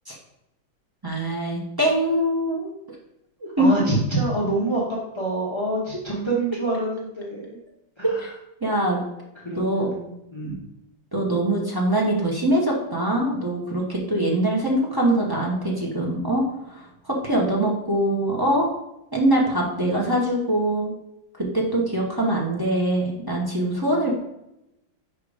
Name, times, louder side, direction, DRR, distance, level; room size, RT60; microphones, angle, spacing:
voice 1, 1.0-2.7 3.6-3.9 8.6-9.0 9.5-9.9 10.4-10.5 11.1-16.4 16.7-18.7 19.1-20.9 21.4-24.1, right 1 dB, 25° right, -3 dB, 0.5 m, -23 dB
voice 2, 3.6-4.8 5.1-7.6 8.0-8.2 9.4-10.6, right 2 dB, 35° left, -5 dB, 0.4 m, -26 dB
4.8 x 4.6 x 4.9 m, 0.86 s
omnidirectional pair, 2.2 m